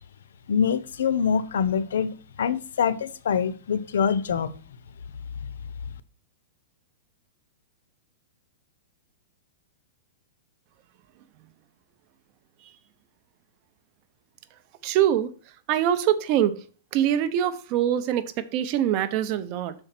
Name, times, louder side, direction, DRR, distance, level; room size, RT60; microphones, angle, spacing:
voice 1, 0.5-4.5, left 7 dB, 80° left, 15 dB, 0.6 m, -25 dB
voice 2, 14.8-15.3 15.7-16.6 16.9-19.7, right 10 dB, 40° right, 11 dB, 0.7 m, -23 dB
6.3 x 4.4 x 5.7 m, 0.39 s
hypercardioid pair, 150°, 0 cm